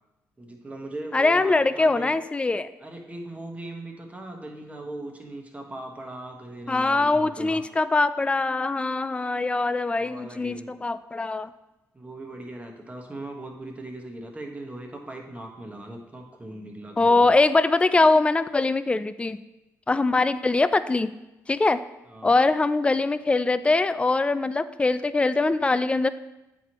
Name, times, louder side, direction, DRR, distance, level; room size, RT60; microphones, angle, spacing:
voice 1, 0.4-2.1 2.8-7.6 10.0-10.7 11.9-17.3 22.1-22.3, right 1 dB, 20° right, 2 dB, 1.2 m, -39 dB
voice 2, 1.1-2.7 6.7-11.5 17.0-19.4 19.9-21.1 21.5-21.8 22.2-26.1, left 3 dB, 15° left, 13 dB, 0.3 m, -22 dB
8.1 x 4.5 x 3.0 m, 0.97 s
supercardioid pair, 70°, 7 cm